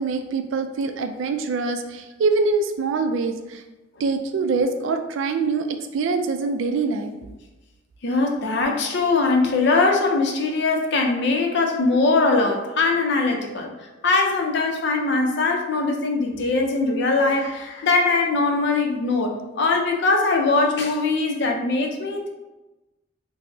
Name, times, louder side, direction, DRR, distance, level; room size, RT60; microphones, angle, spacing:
voice 1, 0.0-3.6 4.0-7.1, right 4 dB, 75° right, 7 dB, 0.3 m, -24 dB
voice 2, 8.0-13.7 14.0-22.3, left 3 dB, 60° left, 2 dB, 0.5 m, -21 dB
4.3 x 2.0 x 2.6 m, 1.1 s
head